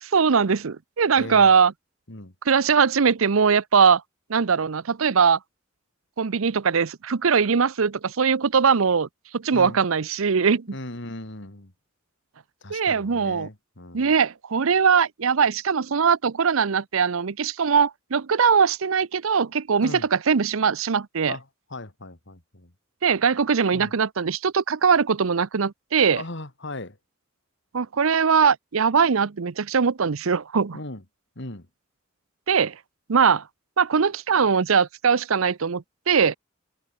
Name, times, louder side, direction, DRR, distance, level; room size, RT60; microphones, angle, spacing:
voice 1, 0.0-1.7 2.5-4.0 4.3-5.4 6.2-9.1 9.3-10.7 12.7-13.5 13.9-21.4 23.0-26.2 27.7-30.8 32.5-32.7 33.1-33.4 33.8-36.4, right 6 dB, 80° right, 0.7 m, -21 dB
voice 2, 1.2-1.5 2.1-2.3 9.5-9.8 10.7-11.7 12.6-14.1 19.8-20.1 21.3-22.7 23.7-23.9 26.1-27.0 30.7-31.0 31.4-31.7, left 2 dB, 60° left, 2.5 m, -38 dB
head